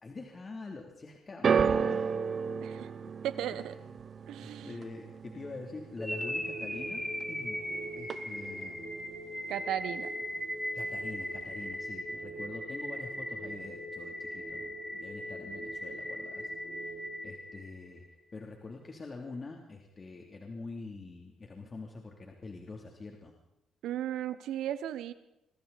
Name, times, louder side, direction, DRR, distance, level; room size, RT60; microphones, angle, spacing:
voice 1, 0.0-2.3 3.7-3.9 4.4-7.0 7.3-7.6 8.0-8.8 10.7-16.5 16.8-18.0 18.3-23.3, left 3 dB, 35° left, 1 dB, 3.0 m, -45 dB
sound 1, 1.4-7.7 8.0-8.6 9.4-9.5, right 6 dB, 50° right, 0.7 m, -33 dB
voice 2, 3.2-3.7 4.3-4.8 9.5-10.1 23.8-25.1, right 11 dB, 85° right, 13 dB, 1.1 m, -35 dB
sound 2, 6.0-18.0, equal, 5° left, 3.4 m, -38 dB
25.5 x 24.5 x 4.2 m, 0.87 s
cardioid pair, 90°, 0 cm